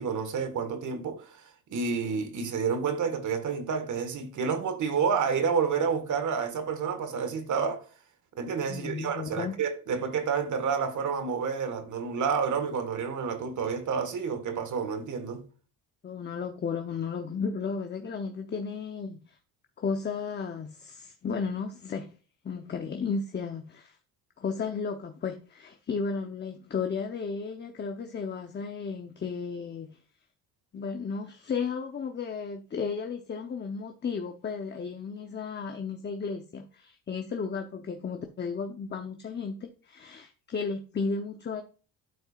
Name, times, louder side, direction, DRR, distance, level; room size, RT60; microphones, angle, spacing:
voice 1, 0.0-7.9 8.3-15.4, right 6 dB, 45° right, 1.6 m, -29 dB
voice 2, 8.7-9.5 16.0-19.4 19.8-22.1 22.4-24.0 24.4-30.0 30.7-41.6, left 5 dB, 25° left, 0.8 m, -34 dB
12.5 x 4.4 x 2.4 m
cardioid pair, 110°, 40 cm